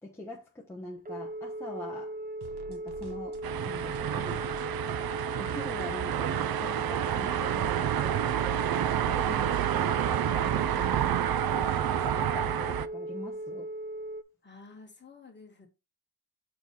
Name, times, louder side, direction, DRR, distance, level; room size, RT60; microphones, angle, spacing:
voice 1, 0.0-2.2 2.7-4.7 5.4-13.7, left 1 dB, 5° left, 0.9 m, -43 dB
Telephone, 1.0-14.2, right 1 dB, 25° right, 0.7 m, -38 dB
sound 1, 2.4-12.3, right 8 dB, 85° right, 0.9 m, -47 dB
sound 2, 3.4-12.9, right 11 dB, 70° right, 0.5 m, -29 dB
voice 2, 14.4-15.7, left 4 dB, 30° left, 1.8 m, -51 dB
6.8 x 3.9 x 4.2 m
wide cardioid pair, 170°, 38 cm